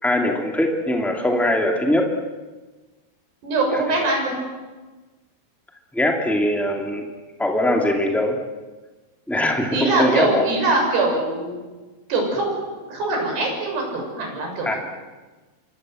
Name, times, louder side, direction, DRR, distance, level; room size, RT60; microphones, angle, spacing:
voice 1, 0.0-2.1 3.7-3.8 5.9-7.1 7.4-8.4 9.3-10.4 14.6-14.7, left 1 dB, ahead, 2 dB, 0.5 m, -21 dB
voice 2, 3.4-4.3 9.7-11.6 12.1-12.5 12.9-14.8, right 2 dB, 55° right, 1 dB, 8.5 m, -22 dB
28.5 x 25.0 x 7.9 m, 1.2 s
omnidirectional pair, 5.7 m